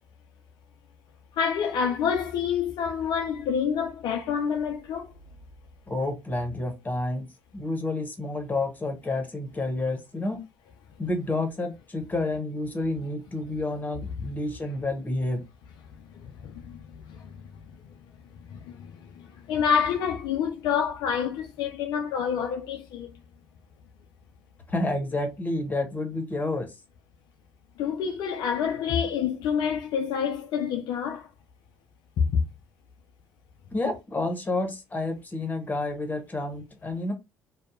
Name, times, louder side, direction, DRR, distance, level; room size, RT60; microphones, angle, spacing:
voice 1, 1.3-5.1 14.2-14.3 16.1-16.8 17.1-17.5 18.5-23.1 27.8-31.3 32.2-32.4, left 7 dB, 65° left, 0.3 m, -28 dB
voice 2, 5.9-7.3 7.5-10.4 11.0-15.4 24.7-26.7 33.7-37.1, left 2 dB, 20° left, 0.9 m, -29 dB
2.6 x 2.1 x 2.4 m
hypercardioid pair, 55°, 8 cm